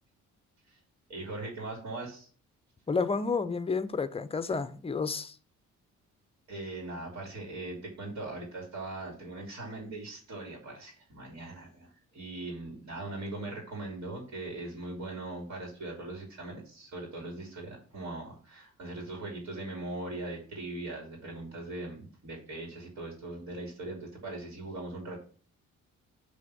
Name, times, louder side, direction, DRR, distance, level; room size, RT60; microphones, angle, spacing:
voice 1, 1.1-2.3 6.5-25.2, right 2 dB, 55° right, 3.0 m, -40 dB
voice 2, 2.9-5.3, left 4 dB, 20° left, 0.6 m, -30 dB
7.4 x 3.5 x 6.2 m
cardioid pair, 90°, 30 cm